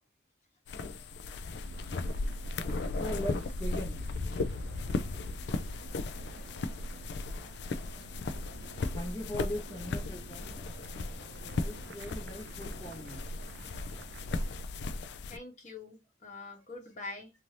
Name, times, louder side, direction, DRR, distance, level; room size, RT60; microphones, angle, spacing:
sound 1, 0.7-15.4, left 3 dB, 65° left, 0.3 m, -36 dB
sound 2, 1.6-14.6, right 4 dB, 65° right, 0.4 m, -52 dB
voice 1, 2.9-4.1 8.9-11.0 11.6-13.3, left 1 dB, 10° left, 0.6 m, -40 dB
voice 2, 15.3-17.3, left 3 dB, 40° left, 1.0 m, -45 dB
2.6 x 2.6 x 3.1 m
head